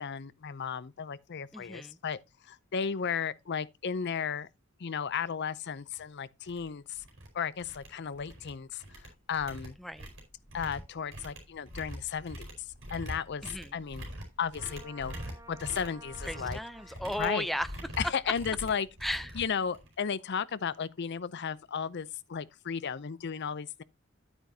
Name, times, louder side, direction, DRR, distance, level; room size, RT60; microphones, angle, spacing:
voice 1, 0.0-2.2 2.5-4.5 4.8-7.0 7.3-8.8 9.3-9.8 10.5-12.5 12.9-13.4 13.7-14.1 14.4-15.2 15.5-16.6 17.2-17.5 18.0-18.9 19.3-23.8, left 7 dB, 55° left, 0.5 m, -34 dB
voice 2, 1.5-2.0 9.8-10.1 13.4-13.8 16.2-17.7 19.0-19.3, equal, ahead, 0.5 m, -35 dB
sound 1, 5.9-6.0 6.5-6.7 7.0-7.3 7.6-8.5 8.8-20.0, equal, 70° right, 4.6 m, -43 dB
Trumpet, 14.5-17.1, right 2 dB, 15° right, 1.2 m, -52 dB
10.5 x 9.0 x 2.8 m
head